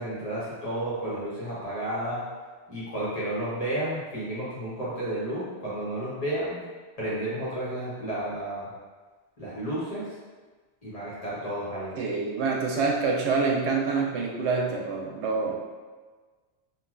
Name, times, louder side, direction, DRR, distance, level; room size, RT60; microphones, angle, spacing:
voice 1, 0.0-2.2 2.7-6.6 7.0-8.7 9.4-10.1 10.8-11.9, right 1 dB, 35° left, -9 dB, 1.1 m, -32 dB
voice 2, 12.0-15.5, right 4 dB, 90° right, -1 dB, 0.9 m, -26 dB
3.0 x 2.5 x 2.5 m, 1.4 s
omnidirectional pair, 1.1 m